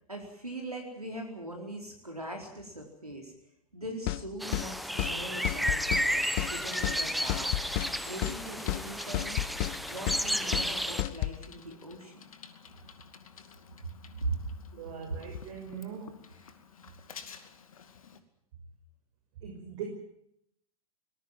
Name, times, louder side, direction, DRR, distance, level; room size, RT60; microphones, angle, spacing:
voice 1, 0.1-3.3 3.7-7.5 8.0-9.4 9.9-12.2 13.8-13.9 14.2-14.4 15.1-15.3, right 2 dB, 90° right, 2 dB, 4.4 m, -40 dB
sound 1, 4.1-4.2 4.5-4.7 5.0-5.1 5.4-6.1 6.4-6.5 6.8-7.0 7.3-7.9 8.2-8.4 8.7-8.8 9.1-9.8 10.1-10.2 10.5-10.7 11.0-11.4, left 18 dB, 40° left, 0.9 m, -31 dB
sound 2, 4.4-11.0, equal, ahead, 1.1 m, -32 dB
Bicycle, 6.2-18.2, left 6 dB, 70° left, 2.5 m, -51 dB
voice 2, 14.7-16.5 19.4-19.8, right 8 dB, 55° right, 2 dB, 5.9 m, -42 dB
24.5 x 20.0 x 7.7 m, 0.75 s
figure-of-eight pair, 100°, 19 cm